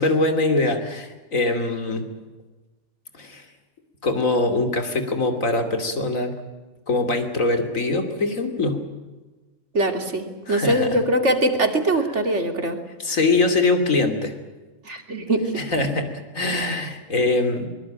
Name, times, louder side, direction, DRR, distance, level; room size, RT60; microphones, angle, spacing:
voice 1, 0.0-2.0 3.1-3.4 4.0-6.3 6.9-8.8 10.5-11.0 13.0-14.3 15.6-17.7, left 2 dB, 80° left, 6 dB, 3.2 m, -23 dB
voice 2, 9.7-12.8 14.8-15.5, right 1 dB, 60° right, 6 dB, 3.0 m, -22 dB
23.0 x 21.0 x 8.9 m, 1.2 s
omnidirectional pair, 1.4 m